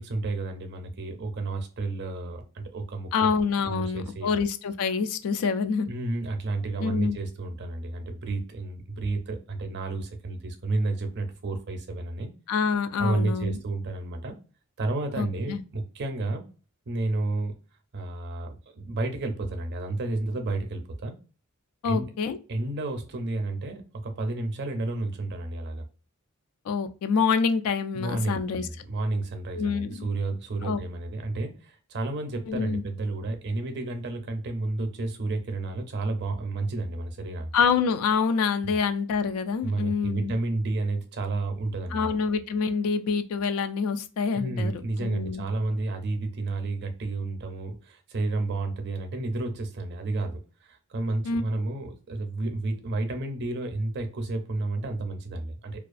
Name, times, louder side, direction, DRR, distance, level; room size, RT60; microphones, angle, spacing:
voice 1, 0.0-3.3 3.7-4.3 5.9-12.3 13.0-14.4 14.8-16.5 16.9-17.6 17.9-21.2 21.8-22.1 22.5-25.8 27.9-37.5 38.6-38.8 39.6-42.1 44.3-55.8, right 2 dB, 50° right, 6 dB, 0.5 m, -31 dB
voice 2, 3.1-5.9 6.8-7.2 12.5-13.6 15.2-15.6 21.8-22.4 26.7-28.7 29.5-30.1 30.6-30.8 32.5-32.8 37.5-40.3 41.9-44.7 45.0-45.5 51.2-51.4, left 5 dB, 80° left, 11 dB, 0.3 m, -26 dB
2.3 x 2.3 x 2.4 m, 0.36 s
head